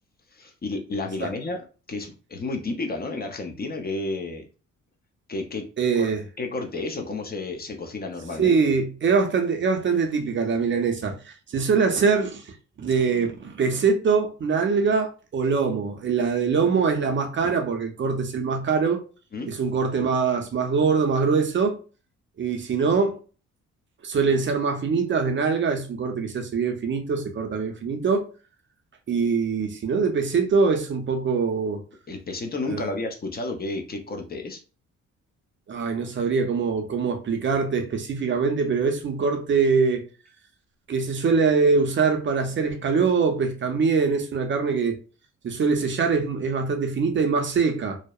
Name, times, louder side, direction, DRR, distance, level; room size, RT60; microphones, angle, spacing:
voice 1, 0.3-4.5 5.3-5.6 6.0-6.1 6.4-8.7 19.3-19.5 32.1-34.6, left 3 dB, 30° left, 0.5 m, -31 dB
voice 2, 5.8-6.2 8.4-19.0 19.5-21.8 22.4-23.2 24.0-28.3 29.1-31.8 32.7-32.9 35.7-40.0 40.9-45.0 45.4-48.0, right 5 dB, 40° right, 0.5 m, -23 dB
2.6 x 2.0 x 2.3 m
cardioid pair, 90°, 30 cm